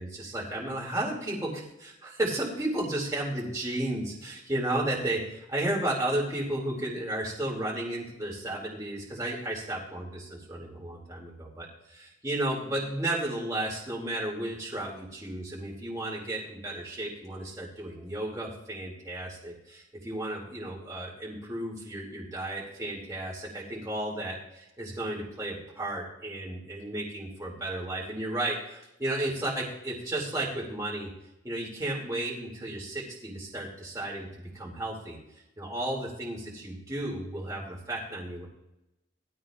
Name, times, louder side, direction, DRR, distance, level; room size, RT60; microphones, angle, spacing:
voice 1, 0.0-31.1 31.4-35.2 35.6-38.5, right 1 dB, 20° right, -4 dB, 2.6 m, -33 dB
19.0 x 13.0 x 2.5 m, 0.88 s
head